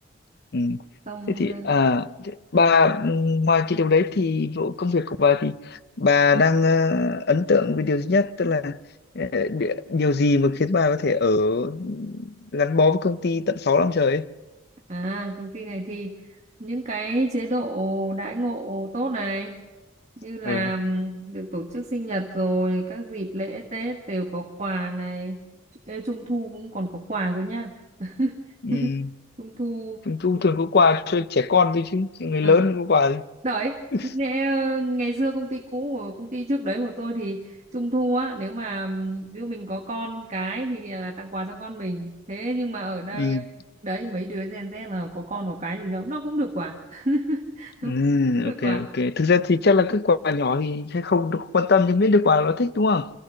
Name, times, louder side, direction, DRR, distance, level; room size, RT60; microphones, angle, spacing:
voice 1, 0.5-0.8 1.3-8.8 9.1-14.3 20.4-20.7 28.6-29.1 30.1-33.2 33.9-34.0 43.1-43.5 47.8-53.1, left 4 dB, 50° left, 0.6 m, -21 dB
voice 2, 1.1-1.7 14.9-19.6 20.2-25.4 25.9-27.7 28.0-28.4 28.7-28.9 29.4-30.0 32.4-32.6 33.4-33.8 34.1-43.4 43.8-47.9 48.4-48.8, right 1 dB, 35° right, 1.4 m, -29 dB
25.5 x 16.0 x 6.4 m
head